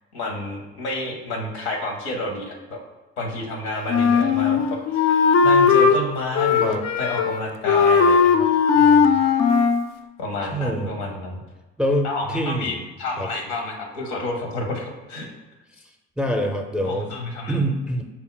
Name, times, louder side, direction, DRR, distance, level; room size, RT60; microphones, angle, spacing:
voice 1, 0.1-2.8 3.2-8.5 8.7-9.2 10.2-11.4 12.0-15.3 16.8-17.6, left 2 dB, 85° left, 1 dB, 0.8 m, -30 dB
Wind instrument woodwind instrument, 3.9-6.0 6.4-7.4 7.7-9.9, left 6 dB, 55° left, 0.4 m, -17 dB
voice 2, 10.5-11.0 11.8-12.9 13.2-13.3 16.2-17.1 17.5-18.0, equal, 5° right, 3 dB, 0.5 m, -25 dB
4.3 x 2.0 x 3.7 m, 1.2 s
hypercardioid pair, 60°, 32 cm